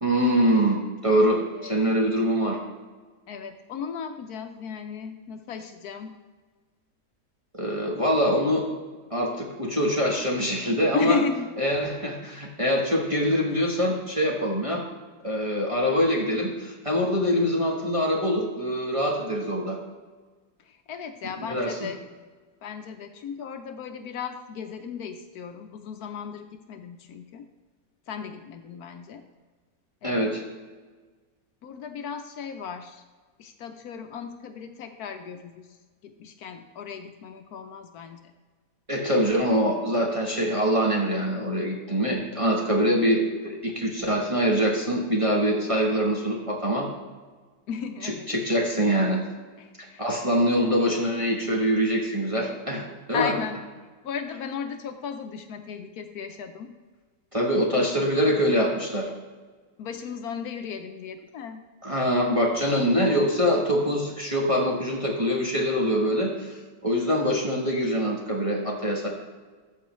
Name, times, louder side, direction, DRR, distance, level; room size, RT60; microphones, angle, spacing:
voice 1, 0.0-2.6 7.5-8.6 9.1-11.2 11.6-14.8 15.2-19.8 21.5-21.8 30.0-30.4 38.9-46.9 48.0-49.2 50.0-53.3 57.3-59.1 61.8-66.5 66.8-69.1, equal, 25° right, -2 dB, 1.0 m, -24 dB
voice 2, 1.5-2.0 3.3-6.1 10.9-11.5 20.6-22.0 22.6-27.4 28.1-29.2 30.0-30.4 31.6-33.0 33.4-35.7 36.0-38.3 47.7-48.3 49.6-50.0 53.1-53.6 54.0-56.7 59.8-61.6, left 7 dB, 70° left, 7 dB, 1.1 m, -35 dB
14.0 x 6.7 x 3.1 m, 1.4 s
omnidirectional pair, 1.8 m